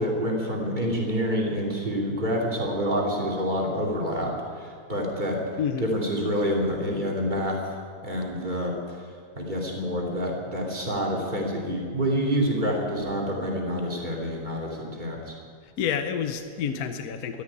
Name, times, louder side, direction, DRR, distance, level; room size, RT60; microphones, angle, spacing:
voice 1, 0.0-5.4 5.8-9.1 9.4-15.4, equal, 25° right, -2 dB, 2.8 m, -27 dB
voice 2, 15.8-17.4, left 7 dB, 65° left, 8 dB, 1.3 m, -29 dB
13.0 x 11.0 x 9.7 m, 2.1 s
omnidirectional pair, 1.8 m